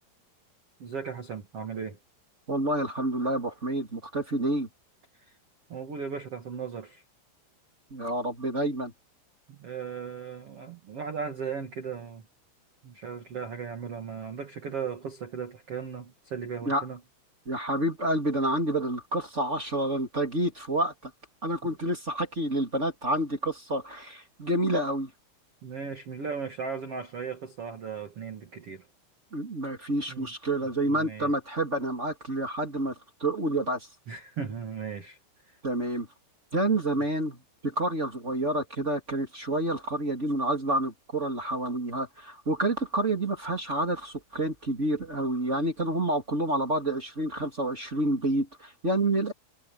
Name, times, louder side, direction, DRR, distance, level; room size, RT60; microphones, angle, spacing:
voice 1, 0.8-2.0 5.7-7.0 9.5-12.2 12.8-17.0 21.6-21.7 25.6-28.9 30.1-30.3 30.8-31.3 34.1-35.2 35.5-35.6, right 6 dB, 65° right, 1.4 m, -37 dB
voice 2, 2.5-4.7 7.9-8.9 16.6-16.8 17.5-21.1 21.4-25.1 29.3-32.9 33.2-33.9 35.6-36.1 36.5-49.3, right 1 dB, 20° right, 2.2 m, -28 dB
omnidirectional pair, 5.7 m